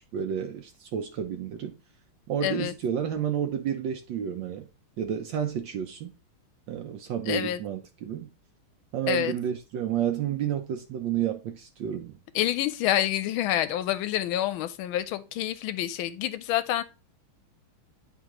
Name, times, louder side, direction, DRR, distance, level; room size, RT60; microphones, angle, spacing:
voice 1, 0.1-1.7 2.3-4.7 5.0-6.1 6.7-8.3 8.9-12.1, right 9 dB, 70° right, 1.2 m, -30 dB
voice 2, 2.4-2.7 7.3-7.6 9.1-9.3 12.3-16.8, left 12 dB, 80° left, 1.4 m, -27 dB
10.0 x 3.6 x 2.9 m
omnidirectional pair, 2.3 m